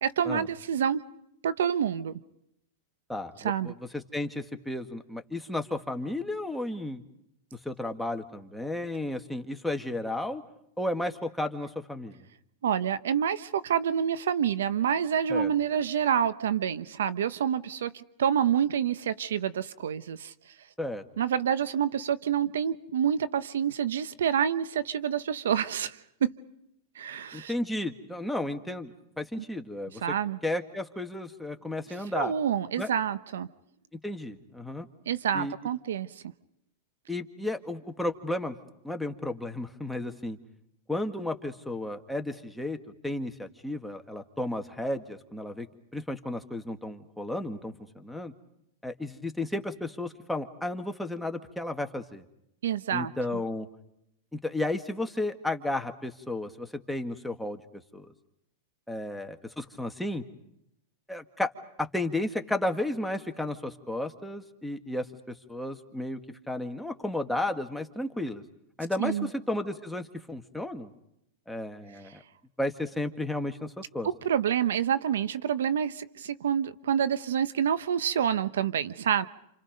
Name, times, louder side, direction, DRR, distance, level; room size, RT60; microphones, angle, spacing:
voice 1, 0.0-1.0 1.4-2.2 3.4-3.7 12.6-20.3 21.2-26.3 26.9-27.5 30.0-30.4 32.1-33.5 35.1-36.1 52.6-53.1 69.0-69.3 74.2-79.3, right 8 dB, 85° right, 1.0 m, -27 dB
voice 2, 3.1-7.0 7.7-10.4 10.8-12.2 15.3-15.5 20.8-21.0 27.3-30.0 30.4-32.3 32.8-32.9 34.0-34.9 35.3-35.5 37.1-38.5 38.8-40.4 40.9-42.8 43.0-45.7 45.9-48.3 48.8-52.2 52.9-53.7 54.3-57.6 57.9-58.1 58.9-60.2 61.1-61.5 61.9-66.2 66.5-68.4 68.8-70.9 71.5-72.2 72.6-74.1, left 1 dB, ahead, 1.8 m, -33 dB
28.5 x 28.5 x 5.3 m
hypercardioid pair, 130°, 0 cm